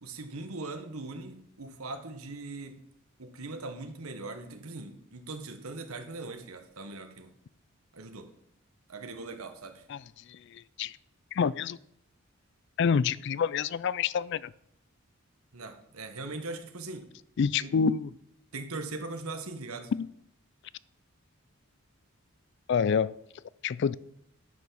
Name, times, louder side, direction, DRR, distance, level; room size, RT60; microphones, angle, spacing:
voice 1, 0.0-2.7 3.2-7.3 7.9-8.3 8.9-9.8 15.5-17.1 17.6-17.7 18.5-19.9, right 3 dB, 80° right, 6 dB, 1.3 m, -40 dB
voice 2, 9.9-11.0 11.3-11.8 12.8-14.5 17.4-18.1 19.9-20.1 22.7-23.1 23.6-23.9, left 6 dB, 55° left, 20 dB, 0.3 m, -28 dB
11.0 x 5.8 x 6.2 m, 0.76 s
head